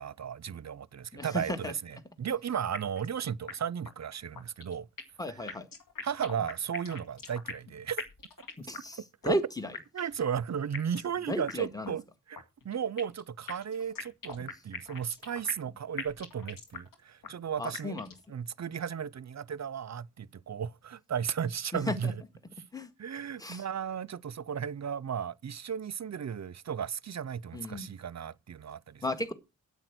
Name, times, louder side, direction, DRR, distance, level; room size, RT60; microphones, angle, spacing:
voice 1, 0.0-4.9 6.0-8.0 9.3-9.4 9.9-12.0 12.3-18.0 18.3-22.2 23.0-29.0, right 8 dB, 55° right, 0.6 m, -35 dB
voice 2, 1.1-1.7 5.2-5.7 8.6-9.7 11.3-11.9 17.6-18.1 21.7-22.1 22.7-22.9 23.4-23.6 27.5-27.9 29.0-29.3, left 1 dB, 10° left, 1.7 m, -34 dB
sound 1, 2.7-3.1 3.5-3.6 3.8-3.9 4.3-5.2 5.5-7.7 8.0-8.9 9.2-9.3 9.7-10.2 10.7-11.1 11.5-11.6 11.8-11.9 12.3-13.2 13.5-15.7 16.0-16.9 17.2-17.3 17.7-18.2, left 5 dB, 85° left, 2.1 m, -41 dB
9.1 x 8.4 x 6.0 m
cardioid pair, 40°, 33 cm